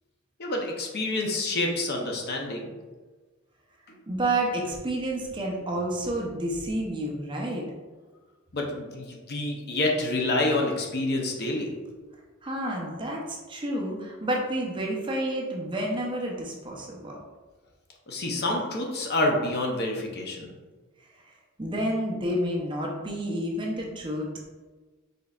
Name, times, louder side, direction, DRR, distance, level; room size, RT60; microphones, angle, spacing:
voice 1, 0.4-2.7 8.5-11.7 18.1-20.5, left 2 dB, 50° left, 1 dB, 0.7 m, -28 dB
voice 2, 4.1-7.7 12.4-17.2 21.6-24.3, right 1 dB, 20° right, -1 dB, 0.6 m, -29 dB
5.1 x 3.9 x 2.4 m, 1.3 s
head